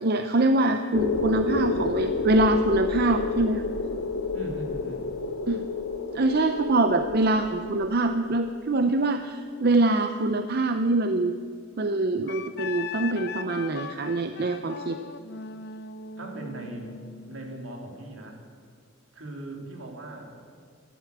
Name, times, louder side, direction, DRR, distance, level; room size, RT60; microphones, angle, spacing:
voice 1, 0.0-3.6 5.5-5.7 6.1-11.4 11.8-15.0, right 2 dB, 50° right, 8 dB, 0.6 m, -24 dB
sound 1, 0.9-8.8, left 3 dB, 85° left, 1.1 m, -30 dB
voice 2, 4.3-5.1 16.2-18.4 19.1-20.3, right 2 dB, 75° right, 1 dB, 2.8 m, -39 dB
Wind instrument woodwind instrument, 12.3-17.6, left 5 dB, 55° left, 0.7 m, -39 dB
14.0 x 11.5 x 8.1 m, 2.1 s
head